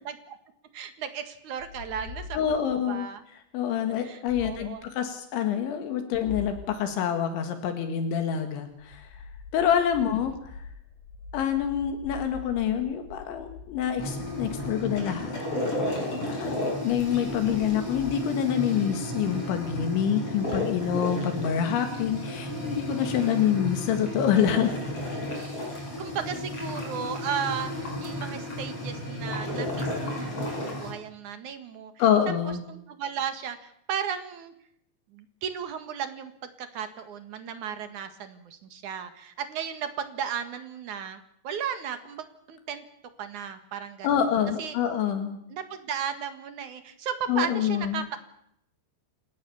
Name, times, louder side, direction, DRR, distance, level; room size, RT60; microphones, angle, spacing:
voice 1, 0.1-0.4 0.7-2.6 2.9-3.2 4.0-4.9 26.0-31.9 32.7-34.5 35.1-36.3 36.6-42.8 43.2-44.1 44.6-44.8 45.5-48.2, right 8 dB, 55° right, 9 dB, 2.5 m, -35 dB
sound 1, 1.6-2.8 4.3-4.9 6.1-6.8 8.7-15.5 16.8-18.2, left 5 dB, 60° left, 4.4 m, -44 dB
voice 2, 2.3-3.1 3.5-9.1 9.5-10.3 11.3-15.4 16.0-24.8 32.0-32.6 44.0-45.4 47.3-48.0, left 9 dB, 80° left, 7 dB, 4.2 m, -26 dB
sound 2, 14.0-30.9, left 1 dB, 30° left, 7.9 m, -33 dB
29.5 x 17.0 x 7.1 m, 0.74 s
omnidirectional pair, 5.3 m